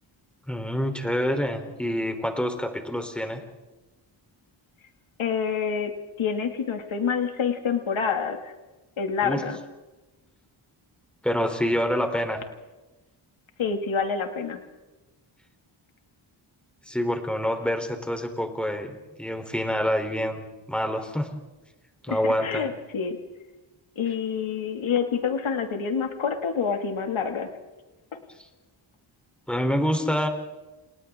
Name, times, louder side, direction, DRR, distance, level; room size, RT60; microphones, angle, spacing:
voice 1, 0.5-3.4 9.2-9.5 11.2-12.4 16.9-18.9 19.2-21.3 22.0-22.7 29.5-30.3, equal, ahead, 5 dB, 3.6 m, -27 dB
voice 2, 5.2-5.9 6.2-8.5 9.0-9.6 13.6-14.6 22.1-23.2 24.0-27.5 28.1-28.2, left 6 dB, 80° left, 5 dB, 2.5 m, -27 dB
30.0 x 29.5 x 3.7 m, 1.1 s
wide cardioid pair, 110°, 47 cm